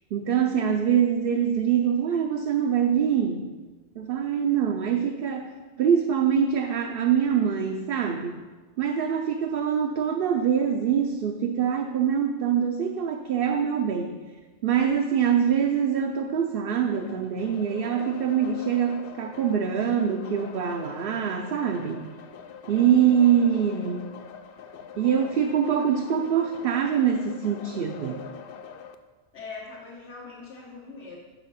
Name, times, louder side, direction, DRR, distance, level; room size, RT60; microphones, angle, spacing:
voice 1, 0.1-3.5 4.0-5.5 5.8-8.4 8.8-14.2 14.6-22.0 22.7-24.1 25.0-28.3, right 8 dB, 65° right, 3 dB, 0.7 m, -24 dB
sound 1, 16.9-29.0, left 7 dB, 65° left, 0.7 m, -43 dB
voice 2, 22.7-23.9 29.3-31.2, left 4 dB, 80° left, -5 dB, 1.5 m, -43 dB
6.3 x 5.8 x 5.6 m, 1.3 s
omnidirectional pair, 1.1 m